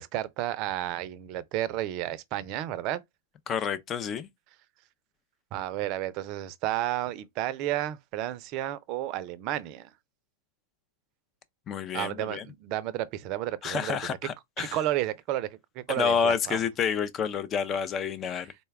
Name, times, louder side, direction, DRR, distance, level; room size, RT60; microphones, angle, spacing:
voice 1, 0.0-3.0 5.5-9.9 11.9-14.0 14.6-16.6, right 13 dB, 45° right, 0.5 m, -32 dB
voice 2, 3.5-4.3 11.7-12.4 13.6-14.8 15.9-18.5, left 7 dB, 30° left, 0.5 m, -29 dB
4.0 x 2.3 x 3.3 m
hypercardioid pair, 120°, 0 cm